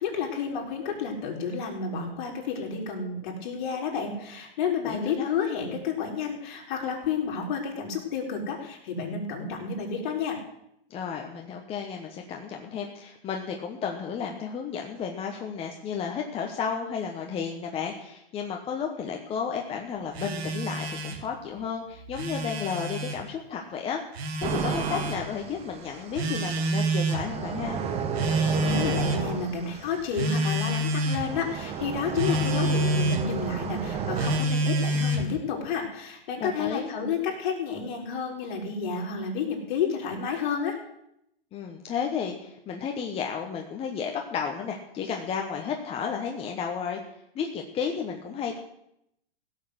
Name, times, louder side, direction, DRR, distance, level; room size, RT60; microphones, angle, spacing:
voice 1, 0.0-10.4 28.3-40.8, left 5 dB, 50° left, 0 dB, 4.1 m, -31 dB
voice 2, 4.8-5.3 10.9-24.0 24.4-27.8 36.4-36.9 41.5-47.0 47.3-48.6, left 6 dB, 20° left, 2 dB, 1.1 m, -33 dB
Telephone, 20.1-21.2 22.0-23.2 24.1-25.2 26.2-27.3 28.2-29.3 30.1-31.2 32.2-33.3 34.2-35.3, right 1 dB, 80° right, 2.3 m, -27 dB
sound 1, 24.4-34.4, right 6 dB, 20° right, 1.2 m, -33 dB
16.5 x 6.5 x 8.0 m, 0.78 s
hypercardioid pair, 145°, 31 cm